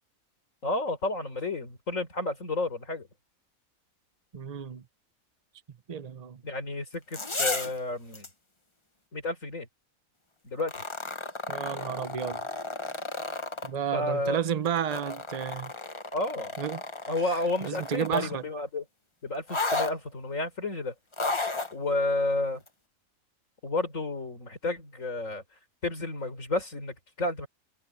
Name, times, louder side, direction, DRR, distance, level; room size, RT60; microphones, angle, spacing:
voice 1, 0.6-3.1 6.4-8.3 9.1-9.7 10.4-10.8 13.9-14.4 16.1-16.6 17.1-18.8 19.2-20.9 21.7-22.6 23.6-25.4 25.8-27.5, left 2 dB, 65° left, 4.7 m, -31 dB
voice 2, 4.3-4.8 5.9-6.4 11.5-12.4 13.6-15.7 16.6-16.8 17.6-18.4, right 8 dB, 35° right, 0.8 m, -31 dB
sound 1, 6.9-7.8 8.1-8.3 10.6-13.7 14.6-18.3 19.5-19.9 21.1-21.7 22.7-22.8, left 3 dB, 20° left, 1.3 m, -33 dB
omnidirectional pair, 1.5 m